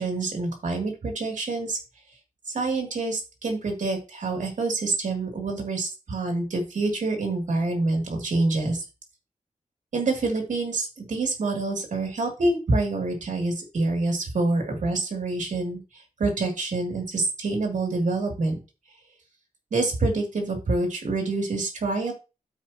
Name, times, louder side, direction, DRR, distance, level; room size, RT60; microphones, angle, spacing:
voice 1, 0.0-1.8 2.5-8.8 9.9-15.8 16.2-18.6 19.7-22.1, right 2 dB, 75° right, 2 dB, 2.9 m, -26 dB
13.0 x 4.9 x 3.0 m, 0.30 s
wide cardioid pair, 130°, 13 cm